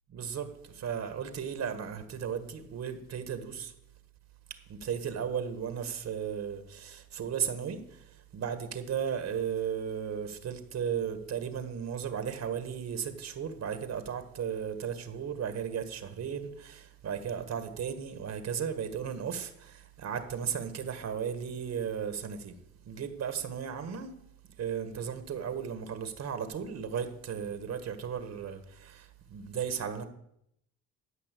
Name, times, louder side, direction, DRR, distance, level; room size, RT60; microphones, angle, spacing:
voice 1, 0.1-3.7 4.7-22.6 22.9-24.1 24.6-30.0, right 7 dB, 60° right, 1.7 m, -35 dB
13.0 x 5.5 x 8.4 m
cardioid pair, 90°, 30 cm